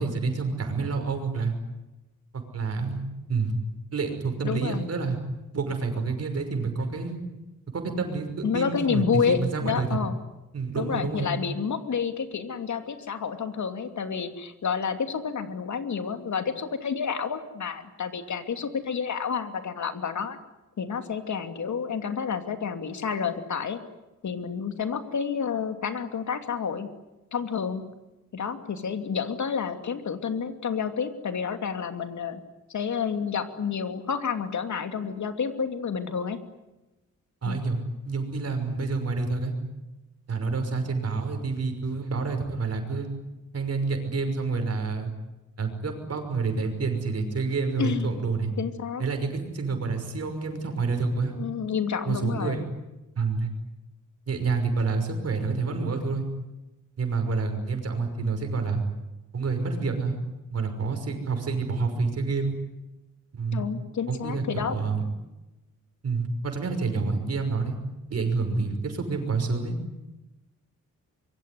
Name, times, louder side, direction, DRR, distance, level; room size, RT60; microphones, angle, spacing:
voice 1, 0.0-1.5 2.3-3.0 3.3-3.6 3.9-5.2 5.5-7.2 7.7-9.9 10.5-11.4 37.4-39.5 40.3-43.1 43.5-45.1 45.6-48.5 49.0-51.3 52.1-52.6 53.2-53.5 54.3-56.2 57.0-58.8 59.3-60.2 60.5-62.5 63.3-63.7 64.1-65.1 66.0-67.8 68.1-69.8, right 4 dB, 50° right, 6 dB, 5.9 m, -28 dB
voice 2, 4.4-4.9 8.4-10.1 10.8-20.4 20.8-23.8 24.2-26.9 27.3-27.8 28.3-32.4 32.7-36.4 37.4-37.6 47.8-48.1 48.6-49.0 51.4-52.6 63.5-64.7, left 6 dB, 65° left, 8 dB, 2.7 m, -29 dB
25.5 x 23.0 x 9.7 m, 1.0 s
wide cardioid pair, 150°, 32 cm